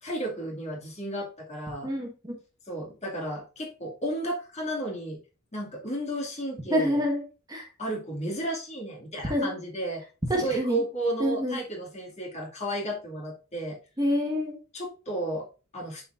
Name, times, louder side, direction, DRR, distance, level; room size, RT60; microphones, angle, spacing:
voice 1, 0.0-1.9 2.7-5.2 5.5-7.0 7.8-10.0 10.3-13.8 14.7-16.1, right 1 dB, 35° left, -2 dB, 2.4 m, -33 dB
voice 2, 1.8-2.4 6.7-7.2 7.5-7.7 9.2-9.5 10.3-10.8 11.2-11.6 14.0-14.6, equal, 20° right, 1 dB, 1.6 m, -27 dB
11.5 x 4.4 x 2.6 m, 0.32 s
head